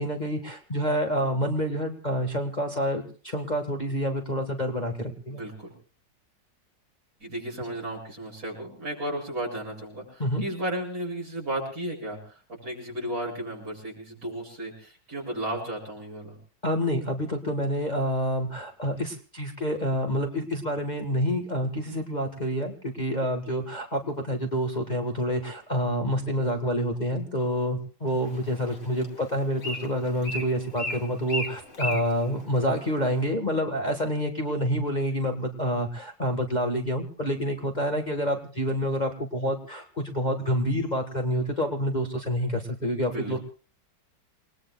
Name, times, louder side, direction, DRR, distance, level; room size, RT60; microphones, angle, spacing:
voice 1, 0.0-5.4 10.2-10.4 16.6-43.4, equal, 25° left, 3 dB, 1.7 m, -28 dB
voice 2, 5.3-5.7 7.2-16.4 43.0-43.4, right 1 dB, 55° right, 0 dB, 7.9 m, -34 dB
Bird, 28.1-33.2, left 1 dB, 45° left, 2.6 m, -37 dB
28.5 x 20.5 x 2.4 m, 0.38 s
omnidirectional pair, 1.9 m